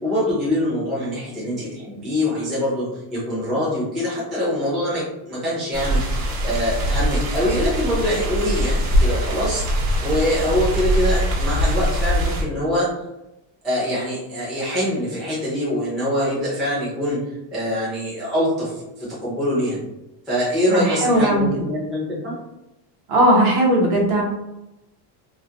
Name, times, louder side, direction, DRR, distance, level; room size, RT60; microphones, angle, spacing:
voice 1, 0.0-9.6 10.0-12.9 13.6-17.2 17.5-19.8 20.3-22.4, equal, ahead, -9 dB, 0.4 m, -24 dB
sound 1, 5.7-12.4, equal, 85° right, 0.8 m, -22 dB
voice 2, 20.7-21.5 23.1-24.2, right 1 dB, 50° right, -2 dB, 0.8 m, -17 dB
2.3 x 2.0 x 2.7 m, 0.92 s
cardioid pair, 150°, 48 cm